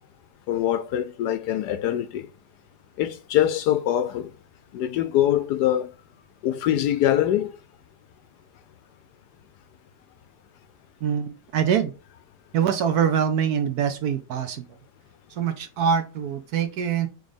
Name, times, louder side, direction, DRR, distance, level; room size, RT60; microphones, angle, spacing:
voice 1, 0.5-2.3 3.0-4.3 4.7-5.9 6.4-7.5, left 11 dB, 70° left, 1.0 m, -23 dB
voice 2, 11.0-11.9 12.5-14.7 15.3-17.1, right 7 dB, 65° right, 1.0 m, -24 dB
4.8 x 3.9 x 5.2 m
omnidirectional pair, 2.0 m